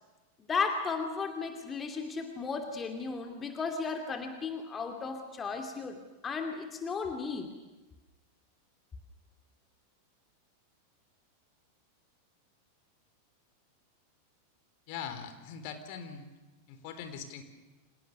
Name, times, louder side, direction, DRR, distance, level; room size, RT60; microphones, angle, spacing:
voice 1, 0.5-6.0 6.2-7.5, left 5 dB, 20° left, 5 dB, 2.7 m, -34 dB
voice 2, 14.9-16.2 16.7-17.4, left 7 dB, 45° left, 9 dB, 3.8 m, -41 dB
29.5 x 27.5 x 6.8 m, 1.2 s
figure-of-eight pair, 90°, 0 cm